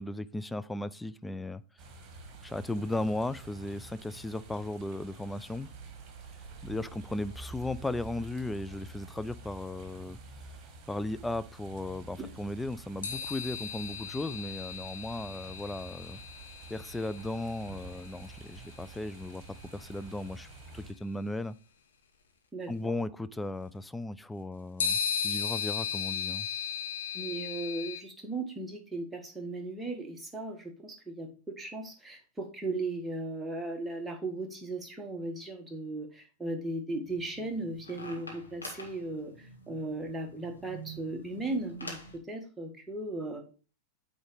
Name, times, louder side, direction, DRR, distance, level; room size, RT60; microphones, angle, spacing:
voice 1, 0.0-1.6 2.4-5.7 6.6-10.2 10.9-16.2 16.7-20.5 20.7-21.6 22.7-26.5, left 2 dB, 5° left, 0.4 m, -36 dB
sound 1, 1.8-20.9, right 3 dB, 35° right, 1.7 m, -49 dB
sound 2, 13.0-18.7 20.0-20.1 24.8-28.0, left 8 dB, 65° left, 1.4 m, -36 dB
voice 2, 22.5-22.9 27.1-43.4, right 2 dB, 10° right, 1.5 m, -37 dB
sound 3, 37.0-42.2, right 1 dB, 80° left, 1.7 m, -46 dB
8.8 x 3.8 x 4.9 m
figure-of-eight pair, 90°, 0 cm